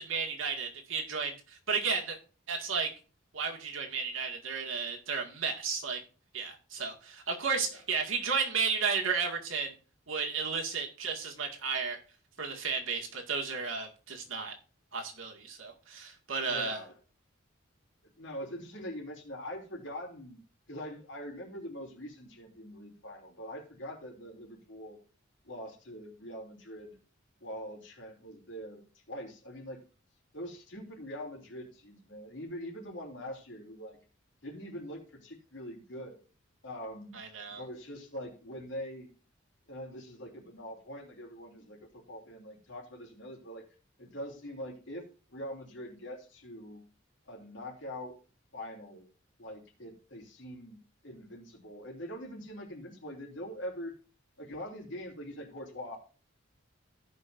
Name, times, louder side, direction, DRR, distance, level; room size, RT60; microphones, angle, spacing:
voice 1, 0.0-2.2 2.5-2.9 3.3-6.0 6.3-9.7 10.1-12.0 12.4-14.5 14.9-16.8 37.1-37.6, right 5 dB, 90° right, 2 dB, 2.0 m, -33 dB
voice 2, 16.4-16.9 18.2-20.4 20.7-25.0 25.4-27.0 27.4-29.8 30.3-34.0 34.4-36.2 36.6-37.2 37.5-39.1 39.7-43.6 44.0-46.8 47.2-48.2 48.5-49.0 49.4-50.8 51.0-54.0 54.4-56.0, equal, 65° left, 0 dB, 3.0 m, -43 dB
16.5 x 5.5 x 2.6 m, 0.37 s
head